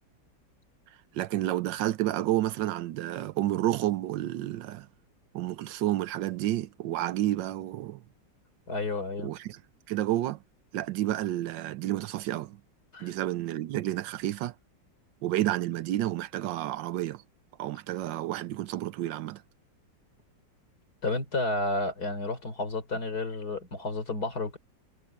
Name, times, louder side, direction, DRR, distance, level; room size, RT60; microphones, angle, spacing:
voice 1, 1.1-4.9 5.3-8.0 9.2-9.6 9.9-10.4 10.7-12.6 13.0-14.5 15.2-17.2 17.6-19.4, right 14 dB, 80° right, 1.4 m, -30 dB
voice 2, 8.7-9.3 12.9-13.1 21.0-24.6, left 2 dB, 55° left, 4.4 m, -31 dB
omnidirectional pair, 1.9 m